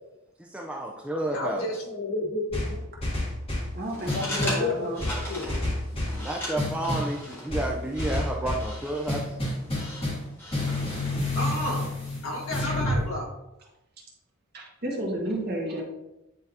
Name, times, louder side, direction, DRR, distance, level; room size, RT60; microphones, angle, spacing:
voice 1, 0.4-1.7 6.2-9.3, right 1 dB, 5° right, -1 dB, 0.5 m, -31 dB
voice 2, 1.3-2.8 4.1-4.9 5.3-5.6 11.3-11.9 12.2-13.3, left 2 dB, 85° left, -1 dB, 1.7 m, -31 dB
sound 1, 2.5-3.7 4.1-4.6 5.0-6.2 6.6-7.1 7.5-8.7 9.1-10.3 10.5-13.0, left 1 dB, 30° left, 2.3 m, -29 dB
voice 3, 3.7-5.0 14.5-15.8, right 1 dB, 50° right, -2 dB, 1.6 m, -32 dB
sound 2, 3.8-11.1, left 1 dB, 10° left, 1.7 m, -39 dB
9.4 x 3.8 x 2.8 m, 0.92 s
head